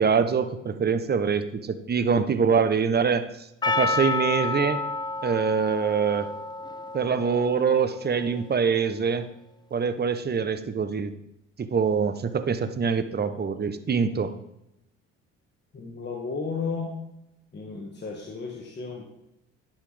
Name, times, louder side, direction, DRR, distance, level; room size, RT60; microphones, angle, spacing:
voice 1, 0.0-4.8 5.2-6.3 6.9-9.3 9.7-11.1 11.6-14.3, right 6 dB, 25° right, 11 dB, 0.8 m, -24 dB
Percussion, 3.6-8.2, left 3 dB, 10° left, 0.5 m, -30 dB
voice 2, 15.7-17.0 17.5-19.1, left 4 dB, 30° left, -1 dB, 1.4 m, -33 dB
11.0 x 5.7 x 3.3 m, 0.84 s
hypercardioid pair, 60°, 36 cm